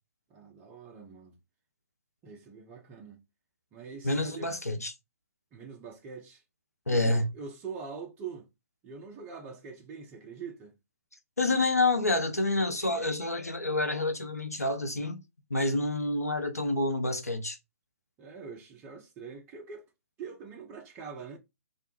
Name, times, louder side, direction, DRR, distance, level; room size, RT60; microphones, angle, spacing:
voice 1, 0.3-1.4 2.2-3.2 3.7-4.5 5.5-6.4 6.9-8.5 8.8-10.7 18.2-19.9 20.2-21.4, right 5 dB, 15° right, 0.4 m, -44 dB
voice 2, 4.0-4.9 6.9-7.2 11.4-15.2 15.5-17.6, left 2 dB, 85° left, 0.6 m, -28 dB
2.2 x 2.1 x 2.9 m
figure-of-eight pair, 125°, 8 cm